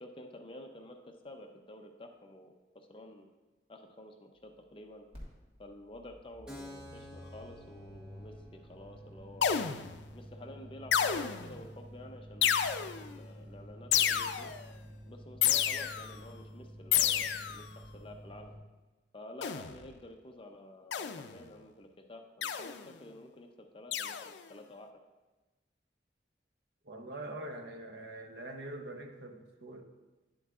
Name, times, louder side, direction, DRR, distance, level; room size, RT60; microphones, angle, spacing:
voice 1, 0.0-3.3 3.7-5.0 5.6-9.7 10.1-12.7 13.0-14.5 15.1-18.5 19.1-23.5 23.7-24.9, left 1 dB, 30° left, 4 dB, 0.6 m, -50 dB
sound 1, 5.1-5.3 5.5-18.6, equal, 30° right, 1.6 m, -51 dB
Keyboard (musical), 6.5-13.8, left 1 dB, 5° right, 0.8 m, -55 dB
sound 2, 9.4-10.0 10.9-11.6 12.4-13.1 13.9-14.7 15.4-16.2 16.9-17.7 19.4-19.8 20.9-21.4 22.4-22.9 23.9-24.4, left 9 dB, 85° left, 0.4 m, -30 dB
voice 2, 26.8-29.8, right 1 dB, 70° right, 4 dB, 0.8 m, -44 dB
10.0 x 7.7 x 2.4 m, 1.2 s
head